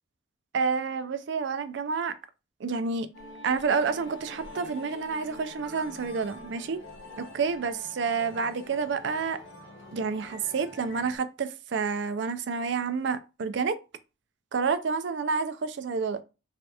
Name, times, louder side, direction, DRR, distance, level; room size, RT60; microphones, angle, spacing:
voice 1, 0.5-2.1 2.6-3.1 3.4-6.8 7.2-9.4 9.9-13.8 14.5-16.2, right 5 dB, 70° right, 0.4 m, -29 dB
sound 1, 3.1-11.2, left 1 dB, 85° left, 1.0 m, -45 dB
3.2 x 2.8 x 2.2 m
head